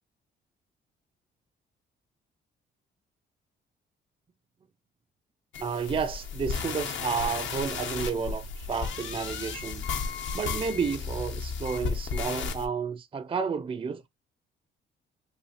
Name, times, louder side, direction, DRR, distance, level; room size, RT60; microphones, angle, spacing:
sound 1, 5.5-12.6, left 5 dB, 70° left, 0.9 m, -34 dB
voice 1, 5.6-9.9 10.3-14.1, right 6 dB, 25° right, 0.4 m, -31 dB
5.5 x 2.7 x 2.9 m
cardioid pair, 90°, 20 cm